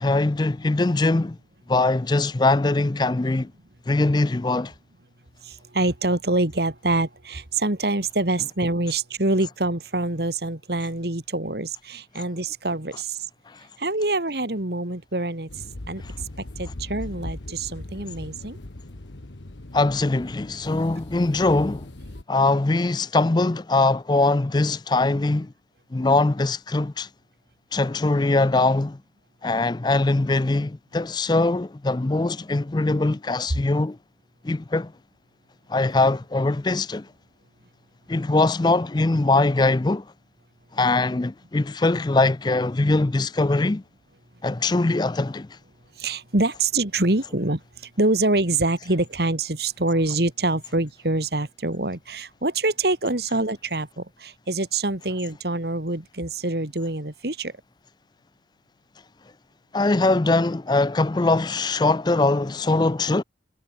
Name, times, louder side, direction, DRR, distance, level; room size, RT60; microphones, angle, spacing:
voice 1, 0.0-1.4 1.7-3.5 3.9-4.7 13.5-13.6 16.0-16.1 19.7-21.9 22.3-25.5 25.9-27.1 27.7-29.0 29.4-34.0 34.4-34.9 35.7-37.1 38.1-40.1 40.7-43.8 44.4-45.6 59.7-63.2, left 2 dB, 25° left, 0.4 m, -22 dB
voice 2, 5.4-13.3 13.8-16.0 16.4-18.6 46.0-57.5, right 2 dB, 60° right, 2.3 m, -25 dB
sound 1, 15.5-22.2, left 1 dB, 80° left, 1.5 m, -39 dB
head